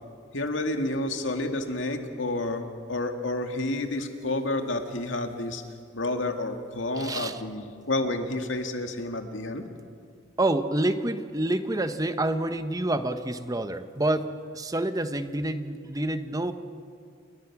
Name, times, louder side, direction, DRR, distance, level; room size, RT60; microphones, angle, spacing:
voice 1, 0.3-5.6 5.9-9.6, left 2 dB, 85° left, 5 dB, 2.2 m, -30 dB
voice 2, 7.0-7.4 10.4-16.5, right 1 dB, 20° right, 9 dB, 1.1 m, -28 dB
28.5 x 23.0 x 6.1 m, 2.2 s
head